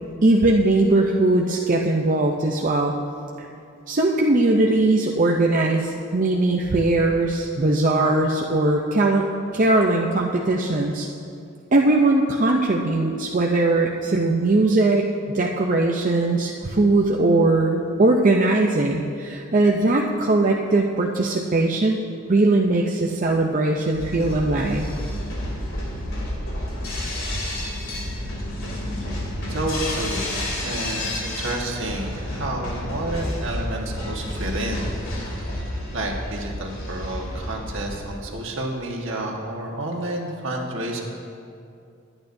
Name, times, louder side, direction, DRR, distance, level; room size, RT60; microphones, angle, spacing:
voice 1, 0.2-2.9 3.9-9.3 9.5-11.1 11.7-22.0 22.3-24.9, right 2 dB, 40° right, 0 dB, 0.6 m, -20 dB
sound 1, 23.9-38.1, left 1 dB, 70° left, 2.9 m, -30 dB
voice 2, 29.5-35.4 35.9-41.0, right 1 dB, 60° right, 0 dB, 1.5 m, -30 dB
21.0 x 9.0 x 2.7 m, 2.5 s
head